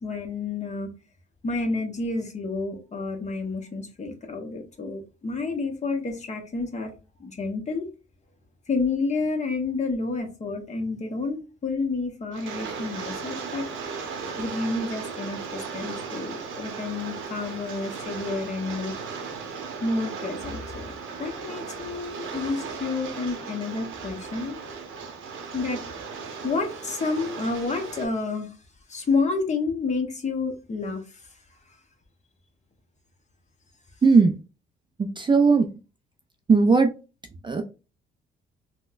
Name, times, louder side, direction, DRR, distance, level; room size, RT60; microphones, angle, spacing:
voice 1, 0.0-0.9 1.4-6.9 7.2-7.9 8.7-13.6 14.4-18.9 19.8-20.9 21.2-24.6 25.5-25.8 26.4-28.6 28.9-31.2, left 3 dB, 35° left, 1.0 m, -29 dB
Rain, 12.3-28.1, right 5 dB, 80° right, 0.9 m, -36 dB
voice 2, 34.0-34.3 35.0-35.7 36.5-36.9 37.4-37.6, right 4 dB, 25° right, 0.4 m, -18 dB
4.0 x 2.1 x 2.4 m
cardioid pair, 90°, 20 cm